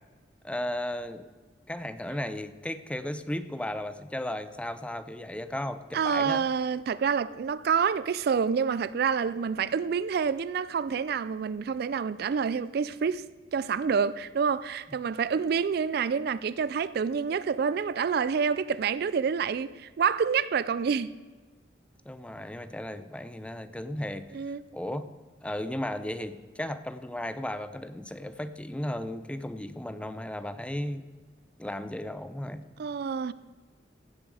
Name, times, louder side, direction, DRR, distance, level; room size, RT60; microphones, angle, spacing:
voice 1, 0.4-1.3 1.7-6.4 22.1-24.3 24.7-25.1 25.4-31.0 31.6-32.6, left 1 dB, 5° left, 0.5 m, -35 dB
voice 2, 5.9-13.3 13.5-21.1 24.3-24.6 32.8-33.3, right 6 dB, 60° right, 0.3 m, -28 dB
16.0 x 7.5 x 4.8 m
head